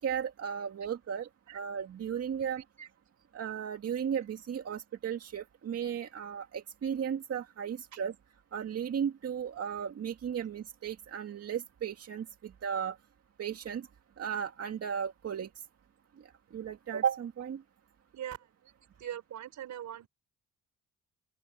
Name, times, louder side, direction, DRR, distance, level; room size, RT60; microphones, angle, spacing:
voice 1, 0.0-2.6 3.3-8.1 8.5-13.0 13.4-13.9 14.2-15.5 16.5-17.6, right 8 dB, 55° right, 2.0 m, -35 dB
voice 2, 19.0-20.1, right 10 dB, 70° right, 5.2 m, -41 dB
open air
cardioid pair, 90°, 30 cm